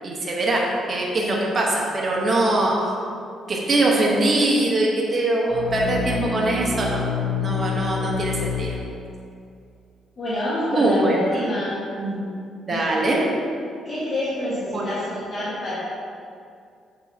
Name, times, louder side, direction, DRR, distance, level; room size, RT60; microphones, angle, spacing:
voice 1, 0.0-2.8 3.5-7.0 7.4-8.8 10.7-11.2 12.0-12.3 12.7-13.3 14.7-14.9, right 2 dB, 35° right, -3 dB, 1.0 m, -22 dB
sound 1, 5.5-9.3, left 4 dB, 85° left, 1.1 m, -27 dB
voice 2, 10.2-11.8 12.7-13.0 13.8-15.8, left 1 dB, 45° left, -9 dB, 1.5 m, -27 dB
6.9 x 5.4 x 2.8 m, 2.4 s
cardioid pair, 90°, 0 cm